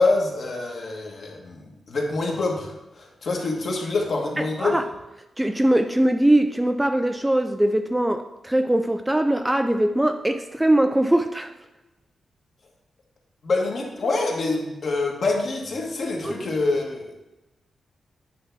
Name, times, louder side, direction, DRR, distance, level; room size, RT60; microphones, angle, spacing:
voice 1, 0.0-4.8 13.4-17.1, left 3 dB, 50° left, 0 dB, 1.5 m, -25 dB
voice 2, 4.4-4.8 5.4-11.5 16.2-16.5, right 1 dB, 10° right, 7 dB, 0.3 m, -21 dB
9.4 x 3.4 x 5.9 m, 1.0 s
wide cardioid pair, 165°, 0 cm